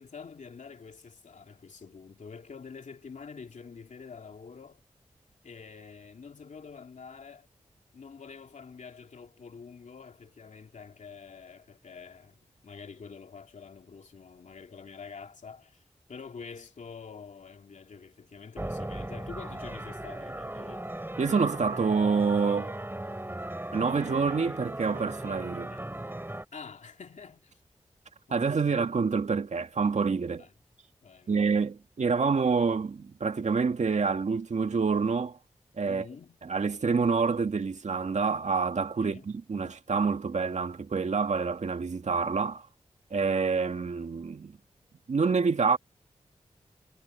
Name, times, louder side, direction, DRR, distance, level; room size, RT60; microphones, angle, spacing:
voice 1, 0.0-4.8 5.4-7.5 7.9-15.8 16.1-20.8 25.7-25.8 26.5-27.6 28.3-28.8 30.4-30.5 31.0-31.7 35.8-36.4 39.0-39.6, left 5 dB, 75° left, 2.8 m, -47 dB
sound 1, 18.5-26.4, right 1 dB, 15° right, 4.4 m, -38 dB
voice 2, 21.2-22.8 23.7-25.7 28.3-30.4 31.3-35.4 35.8-36.0 36.4-42.7 43.1-44.6 45.1-45.8, right 5 dB, 65° right, 2.0 m, -27 dB
cardioid pair, 45°, 13 cm